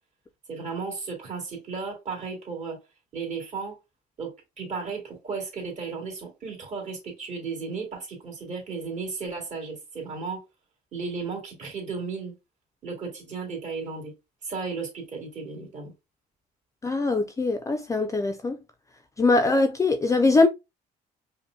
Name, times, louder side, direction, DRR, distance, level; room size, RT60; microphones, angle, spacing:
voice 1, 0.5-2.8 3.1-3.8 4.2-10.4 10.9-12.3 12.8-14.1 14.4-15.9, right 4 dB, 45° right, 2.2 m, -34 dB
voice 2, 16.8-18.6 19.2-20.5, left 3 dB, 20° left, 0.4 m, -22 dB
5.2 x 2.2 x 2.5 m
cardioid pair, 110°, 17 cm